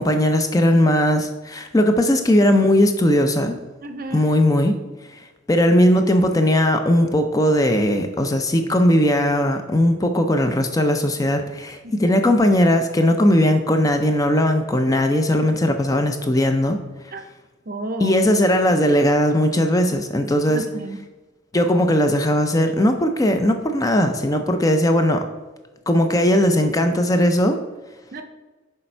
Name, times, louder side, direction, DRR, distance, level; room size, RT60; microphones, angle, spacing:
voice 1, 0.0-3.6 4.1-4.8 5.5-16.8 18.0-20.6 21.5-25.2 25.9-27.6, left 1 dB, 15° left, 6 dB, 0.4 m, -18 dB
voice 2, 3.8-4.3 11.8-12.1 17.1-17.2 17.7-18.2 20.5-21.0 28.1-28.2, right 2 dB, 45° right, 7 dB, 0.6 m, -32 dB
6.6 x 4.2 x 4.4 m, 1.2 s
head